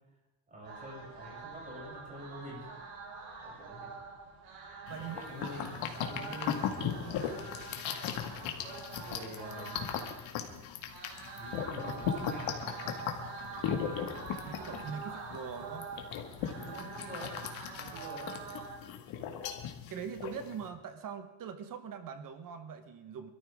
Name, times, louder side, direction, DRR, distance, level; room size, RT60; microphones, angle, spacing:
voice 1, 0.5-2.6 3.4-3.9 5.0-7.5 8.9-10.1 11.4-13.2 13.5-14.1 16.6-17.3 17.7-18.3, equal, 15° right, -5 dB, 7.9 m, -47 dB
sound 1, 0.6-18.8, right 4 dB, 75° right, 7.2 m, -45 dB
sound 2, 4.9-20.7, left 8 dB, 75° left, 2.0 m, -38 dB
voice 2, 14.5-15.9 19.2-19.6 19.9-23.3, right 7 dB, 45° right, 8 dB, 1.2 m, -42 dB
26.0 x 13.5 x 3.6 m, 0.97 s
cardioid pair, 155°, 47 cm